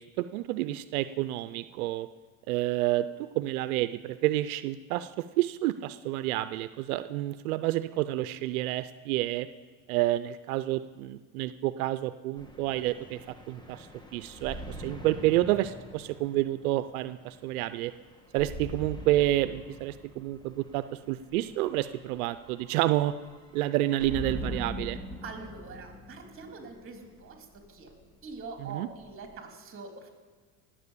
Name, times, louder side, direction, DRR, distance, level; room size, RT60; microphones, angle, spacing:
voice 1, 0.0-2.1 2.5-9.5 9.9-17.9 18.3-23.1 23.5-25.0 28.6-28.9, right 15 dB, 90° right, 13 dB, 0.6 m, -29 dB
sound 1, 12.4-29.4, equal, 10° left, 1.6 m, -44 dB
voice 2, 25.2-27.9 28.2-30.1, right 4 dB, 30° right, 3 dB, 3.4 m, -44 dB
18.5 x 7.5 x 8.3 m, 1.4 s
supercardioid pair, 105°, 42 cm